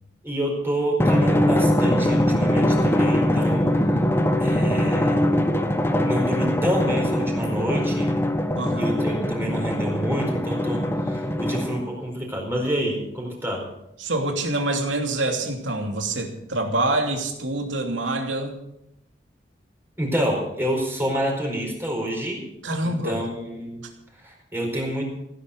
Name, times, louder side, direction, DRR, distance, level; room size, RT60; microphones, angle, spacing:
voice 1, 0.2-3.7 4.4-5.2 6.0-8.2 8.7-13.6 20.0-22.4 22.8-23.8 24.2-25.0, equal, 10° right, 0 dB, 4.7 m, -28 dB
Drum, 1.0-12.0, left 1 dB, 15° left, 1.0 m, -22 dB
voice 2, 8.6-8.9 14.0-18.5 22.6-23.2, right 2 dB, 90° right, 3 dB, 2.8 m, -26 dB
16.5 x 10.0 x 6.7 m, 0.82 s
head